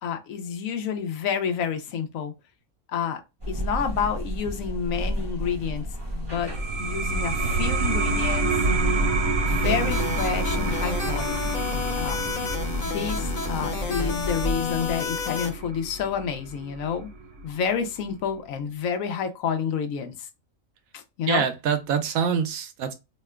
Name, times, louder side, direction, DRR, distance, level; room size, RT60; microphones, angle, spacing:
voice 1, 0.0-2.3 2.9-3.2 3.5-6.5 6.8-8.5 9.5-11.4 12.0-12.2 12.8-17.1 17.4-20.3 20.9-21.4, left 7 dB, 80° left, 1.0 m, -29 dB
sound 1, 3.4-15.1, equal, 25° right, 0.6 m, -32 dB
sound 2, 6.3-17.5, right 2 dB, 55° right, 0.9 m, -28 dB
sound 3, 9.6-15.5, left 5 dB, 45° left, 0.7 m, -31 dB
voice 2, 21.2-22.9, right 7 dB, 85° right, 1.0 m, -25 dB
2.9 x 2.2 x 3.4 m
omnidirectional pair, 1.4 m